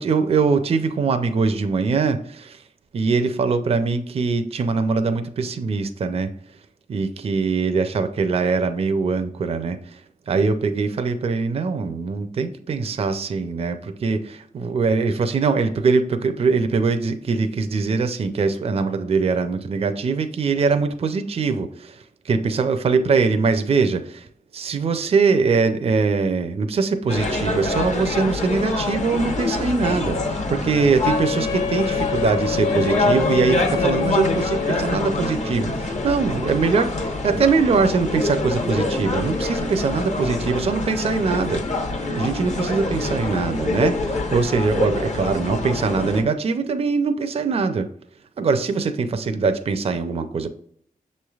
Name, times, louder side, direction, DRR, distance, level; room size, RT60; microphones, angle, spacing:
voice 1, 0.0-2.6 2.9-6.3 6.9-24.3 24.5-41.6 42.1-47.9 48.4-50.5, right 4 dB, 45° right, 9 dB, 0.4 m, -22 dB
sound 1, 27.1-46.2, left 2 dB, 50° left, 0.9 m, -25 dB
Wind instrument woodwind instrument, 31.0-35.1, left 7 dB, 80° left, 0.5 m, -27 dB
6.5 x 3.1 x 2.3 m, 0.65 s
cardioid pair, 75°, 15 cm